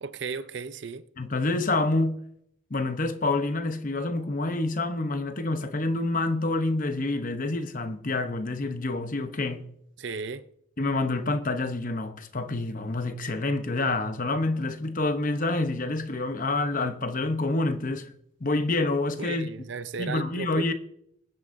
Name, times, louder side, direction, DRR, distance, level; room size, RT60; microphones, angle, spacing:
voice 1, 0.0-1.1 10.0-10.5 19.2-20.7, right 4 dB, 55° right, 0.5 m, -35 dB
voice 2, 1.2-2.2 2.7-9.7 10.8-18.1 18.4-19.5 20.0-20.7, left 2 dB, 40° left, 0.8 m, -27 dB
21.5 x 9.4 x 2.6 m
head